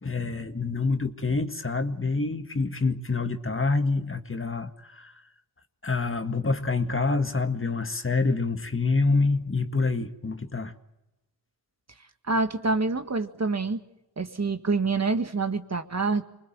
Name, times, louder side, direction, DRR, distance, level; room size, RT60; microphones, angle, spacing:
voice 1, 0.0-5.1 5.8-10.7, left 3 dB, 30° left, 8 dB, 1.8 m, -27 dB
voice 2, 12.3-13.8 14.2-16.2, right 3 dB, 40° right, 8 dB, 1.8 m, -26 dB
24.0 x 20.5 x 7.4 m, 0.97 s
cardioid pair, 45°, 41 cm